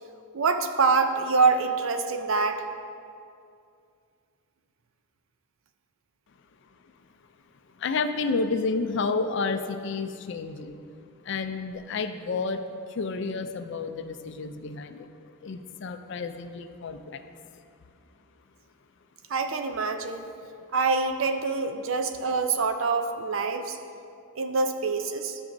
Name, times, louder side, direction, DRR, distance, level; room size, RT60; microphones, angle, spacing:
voice 1, 0.3-2.6 19.3-20.3 20.7-23.8 24.4-25.4, right 4 dB, 65° right, 7 dB, 0.5 m, -25 dB
voice 2, 7.8-10.8 11.2-12.6 12.9-15.1 15.4-17.2, left 4 dB, 55° left, 9 dB, 0.4 m, -30 dB
12.5 x 6.2 x 2.6 m, 2.4 s
head